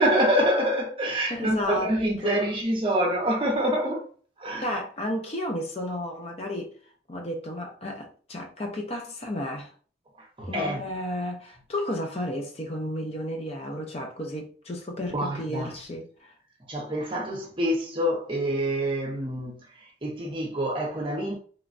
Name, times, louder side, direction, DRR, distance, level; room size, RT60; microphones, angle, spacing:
voice 1, 0.0-4.1 4.4-4.8 10.4-10.8 15.1-15.7 16.7-19.6 20.0-21.4, equal, 30° right, 0.6 m, -26 dB
voice 2, 1.3-1.9 2.2-2.5 4.6-6.7 7.1-9.7 10.4-16.3, left 1 dB, 35° left, 0.5 m, -33 dB
3.0 x 2.2 x 2.5 m
head